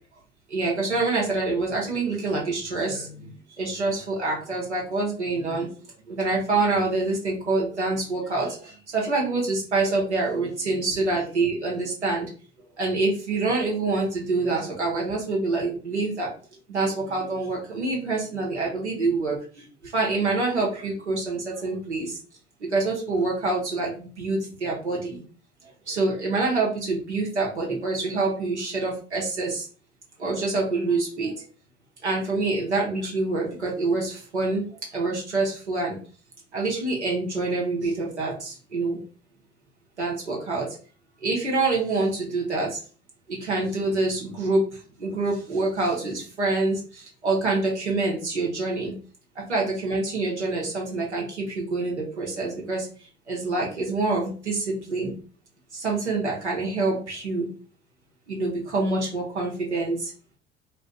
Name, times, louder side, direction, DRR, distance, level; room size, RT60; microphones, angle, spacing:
voice 1, 0.5-3.3 3.6-5.7 6.1-12.3 12.8-16.3 16.7-19.4 19.9-22.1 22.7-25.2 25.9-29.6 30.2-31.3 32.0-34.7 34.9-36.0 36.5-39.0 40.0-40.7 41.2-42.8 43.3-44.6 45.0-46.8 47.2-48.9 49.5-52.9 53.3-55.1 55.7-57.5 58.3-60.1, right 3 dB, 90° right, -3 dB, 0.7 m, -26 dB
2.6 x 2.2 x 3.5 m, 0.39 s
figure-of-eight pair, 55°, 33 cm